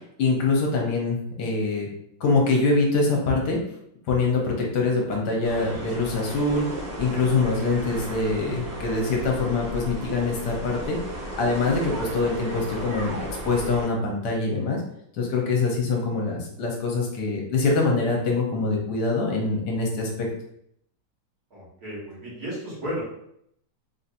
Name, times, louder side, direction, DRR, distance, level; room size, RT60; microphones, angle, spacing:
voice 1, 0.2-1.9 2.2-3.6 4.1-6.6 7.0-11.0 11.4-14.8 15.2-20.3, left 3 dB, 65° left, -1 dB, 1.4 m, -24 dB
sound 1, 5.4-13.9, right 1 dB, 25° right, 1.2 m, -35 dB
voice 2, 7.8-8.1 21.5-23.0, equal, 55° right, -7 dB, 1.7 m, -34 dB
3.6 x 2.8 x 2.6 m, 0.73 s
omnidirectional pair, 2.1 m